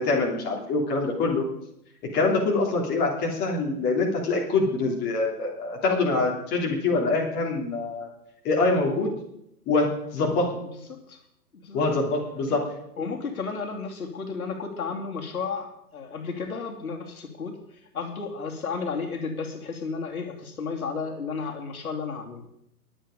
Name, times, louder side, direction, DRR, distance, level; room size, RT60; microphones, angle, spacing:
voice 1, 0.0-1.4 2.1-8.1 8.4-9.1 9.7-10.6 11.7-12.6, left 3 dB, 20° left, -1 dB, 2.9 m, -24 dB
voice 2, 13.0-22.5, left 5 dB, 60° left, 2 dB, 3.0 m, -33 dB
22.0 x 8.4 x 5.2 m, 0.77 s
figure-of-eight pair, 130°, 47 cm